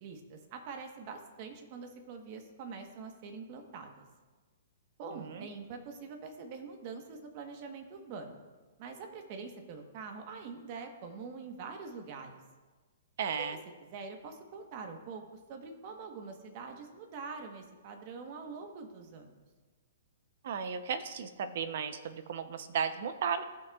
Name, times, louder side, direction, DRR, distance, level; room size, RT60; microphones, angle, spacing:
voice 1, 0.0-4.0 5.0-8.4 8.8-12.3 13.4-15.2 15.5-19.4, right 4 dB, 35° right, 5 dB, 1.1 m, -44 dB
voice 2, 13.2-13.6 20.4-23.4, right 7 dB, 55° right, 11 dB, 0.7 m, -35 dB
16.5 x 5.9 x 2.4 m, 1.3 s
hypercardioid pair, 155°, 0 cm